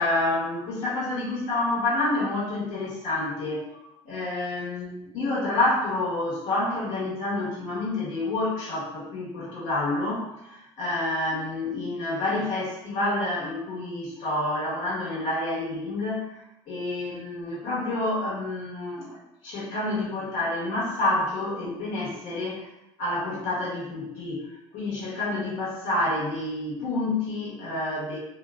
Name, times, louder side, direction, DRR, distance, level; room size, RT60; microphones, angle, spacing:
voice 1, 0.0-3.8 4.0-4.9 5.1-22.7 23.0-28.2, left 2 dB, 70° left, -7 dB, 1.2 m, -28 dB
2.5 x 2.3 x 2.3 m, 0.86 s
hypercardioid pair, 75°, 14 cm